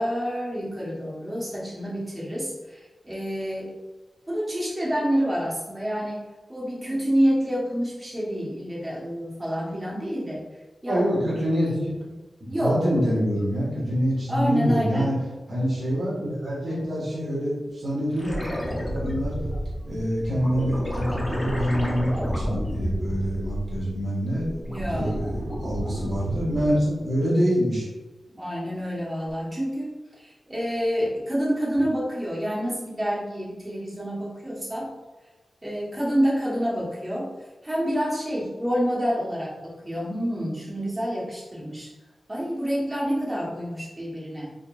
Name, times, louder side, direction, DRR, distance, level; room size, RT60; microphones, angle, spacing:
voice 1, 0.0-3.7 4.3-10.4 10.8-11.1 12.4-12.8 14.3-15.1 16.6-17.0 24.7-25.2 28.3-34.9 35.6-37.3 37.6-41.9 42.3-44.5, equal, 15° right, -6 dB, 1.4 m, -28 dB
voice 2, 10.9-12.1 12.4-15.2 15.5-18.6 18.9-19.3 19.8-27.9, equal, 50° right, -7 dB, 1.4 m, -26 dB
sound 1, 18.2-24.0 24.3-26.9 29.3-29.4, equal, 10° left, 0.7 m, -31 dB
4.2 x 3.8 x 2.5 m, 1.2 s
wide cardioid pair, 115°, 0 cm